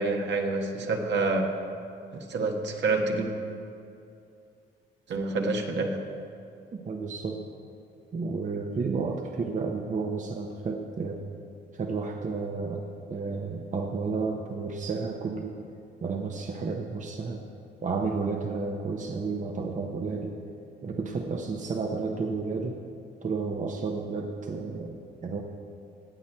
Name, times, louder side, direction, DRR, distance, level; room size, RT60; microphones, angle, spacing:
voice 1, 0.0-1.6 2.1-3.3 5.1-6.0, right 3 dB, 65° right, 3 dB, 1.4 m, -27 dB
voice 2, 6.7-7.4 8.1-11.2 11.7-12.8 13.1-15.5 16.0-17.4 17.8-20.4 20.8-22.8 23.2-25.4, right 4 dB, 40° right, 2 dB, 0.9 m, -31 dB
18.0 x 7.6 x 4.5 m, 2.6 s
cardioid pair, 90°, 20 cm